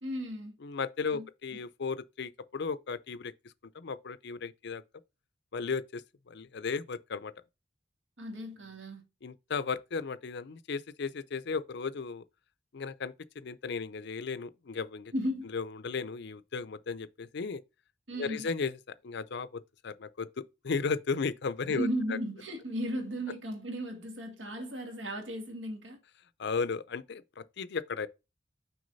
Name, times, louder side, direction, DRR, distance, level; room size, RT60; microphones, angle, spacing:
voice 1, 0.0-0.6 1.1-1.3 8.2-9.1 15.1-15.5 18.1-18.5 21.7-26.0, equal, 75° right, 2.0 m, -35 dB
voice 2, 0.6-3.3 3.7-4.8 5.5-7.3 9.2-12.2 12.7-15.1 15.5-17.6 18.2-21.9 26.4-28.1, left 5 dB, 65° left, 0.5 m, -35 dB
6.3 x 4.7 x 4.0 m
head